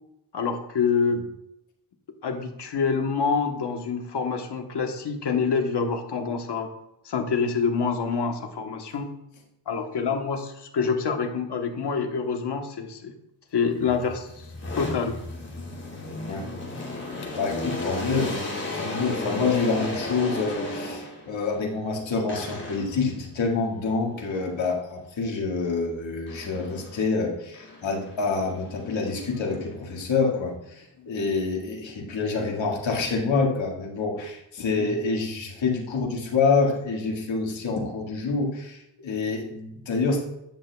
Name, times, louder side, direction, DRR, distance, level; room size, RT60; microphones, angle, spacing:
voice 1, 0.3-1.2 2.2-6.7 7.0-9.1 9.7-13.1 13.5-14.5 14.7-15.2 31.0-31.1 34.8-34.9, left 5 dB, 60° left, 5 dB, 1.2 m, -26 dB
sound 1, 13.8-21.4 22.3-23.1 26.3-27.1 27.5-29.9, left 2 dB, 35° left, 2.7 m, -34 dB
voice 2, 17.4-18.4 18.7-40.2, left 4 dB, 85° left, -1 dB, 1.9 m, -27 dB
10.0 x 8.1 x 2.3 m, 0.84 s
wide cardioid pair, 95°, 45 cm